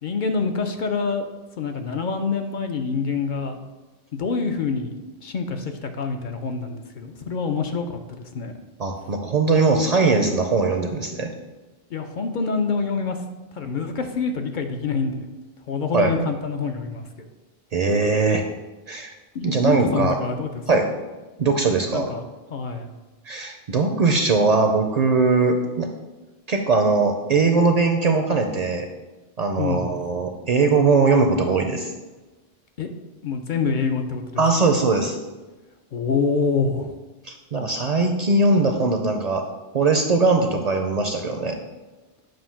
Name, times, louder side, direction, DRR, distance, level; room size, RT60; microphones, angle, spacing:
voice 1, 0.0-1.2 1.6-3.6 4.1-4.9 5.2-8.5 11.9-13.2 13.5-15.3 15.7-17.1 19.3-20.6 21.9-22.2 22.5-22.9 29.6-29.9 32.8-32.9 33.2-34.4 35.9-36.9, left 5 dB, 60° left, 5 dB, 0.6 m, -26 dB
voice 2, 8.8-11.3 15.9-16.1 17.7-18.4 18.9-19.1 19.4-20.2 20.7-20.9 21.4-22.1 23.3-25.9 26.5-28.9 29.4-31.9 34.4-35.2 37.2-39.4 39.7-41.6, right 3 dB, 55° right, 4 dB, 0.5 m, -20 dB
7.6 x 2.6 x 5.6 m, 1.2 s
omnidirectional pair, 1.0 m